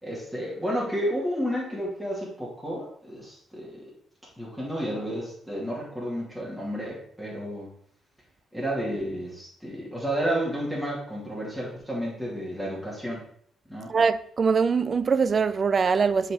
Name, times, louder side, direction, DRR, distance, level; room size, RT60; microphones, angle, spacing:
voice 1, 0.0-3.8 4.4-7.7 8.5-13.3 13.7-13.9, equal, ahead, 2.5 m, -31 dB
voice 2, 13.9-16.3, right 5 dB, 40° right, 0.4 m, -23 dB
7.5 x 4.4 x 3.8 m
cardioid pair, 90°, 0 cm